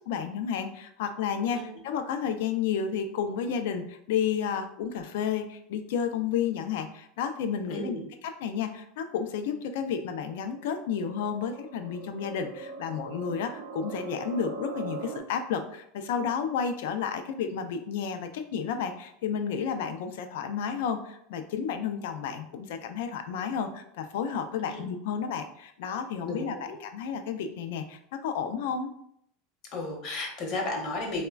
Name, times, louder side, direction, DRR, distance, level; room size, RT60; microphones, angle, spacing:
voice 1, 0.1-28.9, left 7 dB, 75° left, 8 dB, 0.3 m, -31 dB
voice 2, 7.7-8.0 24.6-24.8 26.3-26.8 29.7-31.3, left 2 dB, 45° left, 1 dB, 0.7 m, -33 dB
sound 1, 10.1-15.2, right 4 dB, 90° right, 0.4 m, -41 dB
3.1 x 2.1 x 2.3 m, 0.71 s
supercardioid pair, 125°, 0 cm